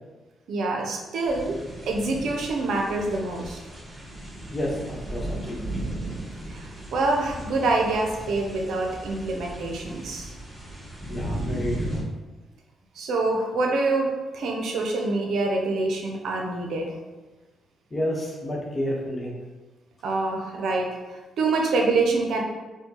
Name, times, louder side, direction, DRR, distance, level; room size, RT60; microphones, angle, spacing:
voice 1, 0.5-1.5 1.8-3.6 6.5-10.3 13.0-16.9 20.0-22.4, right 3 dB, 75° right, 1 dB, 0.6 m, -26 dB
sound 1, 1.3-12.0, right 1 dB, 20° right, 1.5 m, -36 dB
voice 2, 4.5-5.8 11.1-12.0 17.9-19.3, equal, 30° left, -3 dB, 1.0 m, -30 dB
4.3 x 2.2 x 2.9 m, 1.2 s
supercardioid pair, 65°, 0 cm